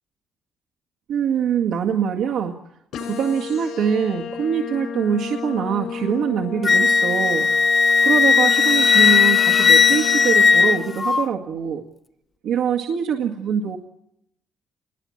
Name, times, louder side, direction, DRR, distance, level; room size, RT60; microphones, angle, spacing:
voice 1, 1.1-2.6 3.0-11.8 12.4-13.8, right 7 dB, 85° right, -1 dB, 2.0 m, -24 dB
sound 1, 2.9-10.9, left 6 dB, 85° left, 6.5 m, -32 dB
Wind instrument woodwind instrument, 6.6-11.2, left 6 dB, 35° left, 1.0 m, -16 dB
28.5 x 21.5 x 8.7 m, 0.84 s
cardioid pair, 90°, 0 cm